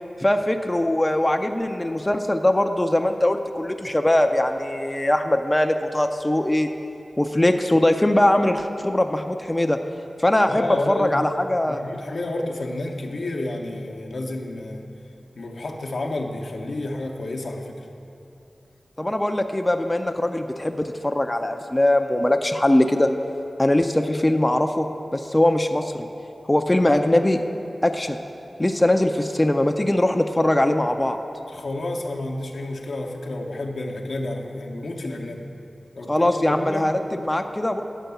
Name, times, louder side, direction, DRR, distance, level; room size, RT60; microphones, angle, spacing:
voice 1, 0.2-6.7 7.2-9.8 10.2-11.8 19.0-23.1 23.6-26.1 26.4-27.4 27.8-28.2 28.6-31.2 36.1-37.8, left 1 dB, 20° left, 5 dB, 0.4 m, -21 dB
voice 2, 10.5-11.2 11.7-14.8 15.4-17.8 31.5-35.4 36.0-36.9, left 2 dB, 75° left, 1 dB, 0.7 m, -30 dB
9.0 x 4.5 x 6.9 m, 2.7 s
cardioid pair, 55°, 0 cm